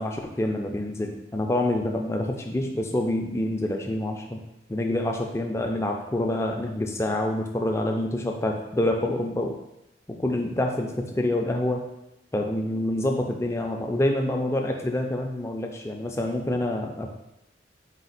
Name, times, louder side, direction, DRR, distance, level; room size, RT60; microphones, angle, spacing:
voice 1, 0.0-4.4 4.7-9.6 10.1-11.8 12.3-17.1, left 1 dB, 15° left, 2 dB, 0.3 m, -27 dB
4.2 x 2.3 x 3.9 m, 0.89 s
head